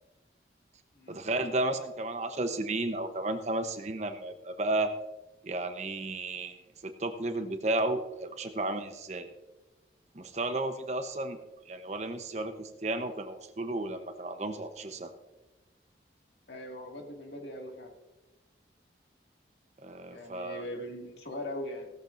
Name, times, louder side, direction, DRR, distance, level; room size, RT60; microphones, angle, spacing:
voice 1, 1.1-4.9 5.4-6.6 6.8-9.3 10.1-11.4 11.7-15.1 19.8-20.6, right 2 dB, 40° right, 7 dB, 0.9 m, -33 dB
voice 2, 16.5-17.9 20.1-21.9, left 1 dB, 75° left, 2 dB, 2.1 m, -40 dB
16.5 x 13.5 x 2.6 m, 1.1 s
head